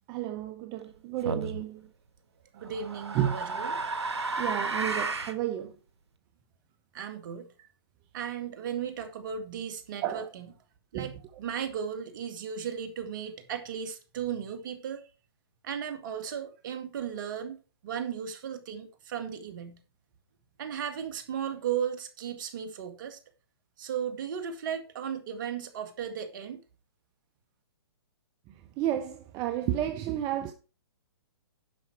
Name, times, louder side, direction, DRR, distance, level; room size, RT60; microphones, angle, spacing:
voice 1, 0.1-1.9 3.1-3.3 4.4-5.8 7.6-7.7 10.0-10.3 10.9-11.1 28.8-30.5, right 12 dB, 30° right, 0.9 m, -31 dB
sound 1, 1.3-1.6 2.6-5.4, right 3 dB, 90° right, 1.4 m, -32 dB
voice 2, 2.5-3.8 6.9-7.5 8.1-10.5 10.9-15.0 15.6-17.6 17.8-19.8 20.6-23.2 23.8-26.6, right 8 dB, 50° right, 2.1 m, -35 dB
10.5 x 6.3 x 4.7 m
hypercardioid pair, 135°, 14 cm